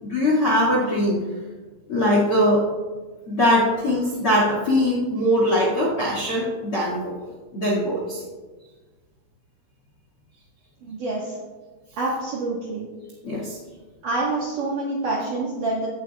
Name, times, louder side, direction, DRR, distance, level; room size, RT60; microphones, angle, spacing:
voice 1, 0.0-1.2 1.9-2.6 3.3-7.1 7.5-8.2 13.2-13.6, left 1 dB, 50° left, -4 dB, 1.8 m, -21 dB
voice 2, 10.8-11.4 12.0-12.9 14.0-15.9, right 2 dB, 65° right, -5 dB, 2.1 m, -27 dB
16.5 x 9.1 x 2.3 m, 1.3 s
omnidirectional pair, 5.5 m